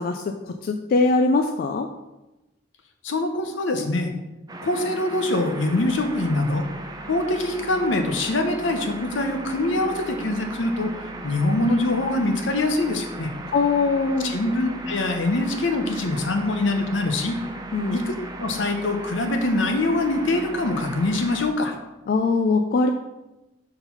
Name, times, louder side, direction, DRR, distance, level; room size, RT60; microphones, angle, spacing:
voice 1, 0.0-1.9 13.5-14.4 17.7-18.0 22.1-22.9, left 3 dB, 50° left, 6 dB, 0.3 m, -22 dB
voice 2, 3.0-4.1 4.6-6.6 7.1-13.3 14.2-17.4 17.9-21.7, left 2 dB, 80° left, 5 dB, 0.8 m, -24 dB
sound 1, 4.5-21.5, right 2 dB, 20° right, 0.5 m, -37 dB
4.4 x 4.0 x 5.5 m, 1.0 s
head